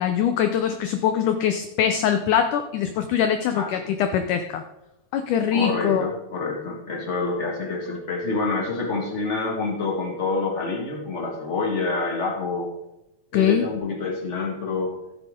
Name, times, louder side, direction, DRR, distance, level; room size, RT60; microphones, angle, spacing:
voice 1, 0.0-4.6 5.1-6.0 13.3-13.6, left 9 dB, 85° left, 7 dB, 1.8 m, -22 dB
voice 2, 5.5-12.7 13.3-14.9, left 3 dB, 50° left, -1 dB, 0.8 m, -27 dB
15.5 x 8.8 x 3.7 m, 0.92 s
omnidirectional pair, 4.4 m